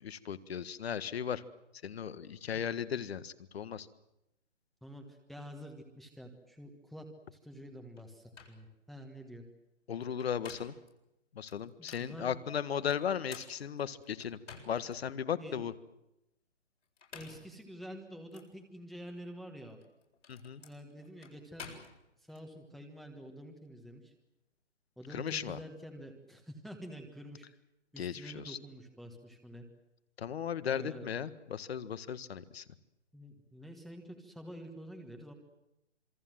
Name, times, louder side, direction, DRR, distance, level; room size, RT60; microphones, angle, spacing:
voice 1, 0.0-1.4 1.8-3.9 9.9-10.7 11.3-14.4 14.6-15.7 20.3-20.6 25.1-25.6 28.0-28.6 30.2-32.6, left 8 dB, 55° left, 14 dB, 1.7 m, -36 dB
voice 2, 4.8-7.1 7.3-9.4 11.8-12.3 15.4-15.6 17.1-19.8 20.6-21.7 22.2-24.1 25.0-27.5 27.9-29.6 30.7-31.2 33.1-35.3, equal, ahead, 2 dB, 1.4 m, -48 dB
sound 1, 8.0-8.1 8.3-8.6 10.0-10.9 11.5-12.1 12.9-15.0 15.5-15.6 16.8-17.5 18.3-18.5 19.7-22.4, left 5 dB, 80° left, 8.0 m, -51 dB
27.0 x 23.5 x 7.7 m, 0.88 s
hypercardioid pair, 155°, 36 cm